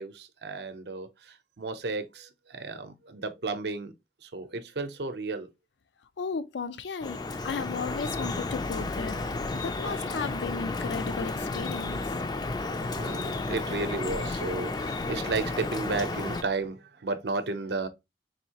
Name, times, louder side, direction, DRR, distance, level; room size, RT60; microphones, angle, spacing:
voice 1, 0.0-3.9 4.2-5.5 11.9-12.1 12.8-17.9, right 3 dB, 70° right, 0.7 m, -33 dB
voice 2, 6.2-9.2 9.5-12.1, left 5 dB, 85° left, 0.4 m, -35 dB
Drip, 7.0-16.4, left 3 dB, 25° left, 0.4 m, -32 dB
sound 1, 8.1-16.7, left 2 dB, 55° left, 0.8 m, -44 dB
4.0 x 2.7 x 2.8 m
head